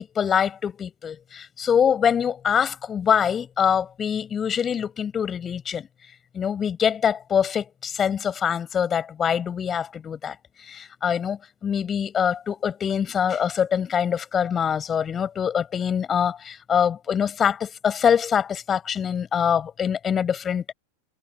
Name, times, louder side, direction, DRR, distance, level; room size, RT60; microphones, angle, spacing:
voice 1, 0.0-5.9 6.3-10.4 10.7-20.7, left 8 dB, 20° left, 7.2 m, -24 dB
figure-of-eight pair, 90°, 0 cm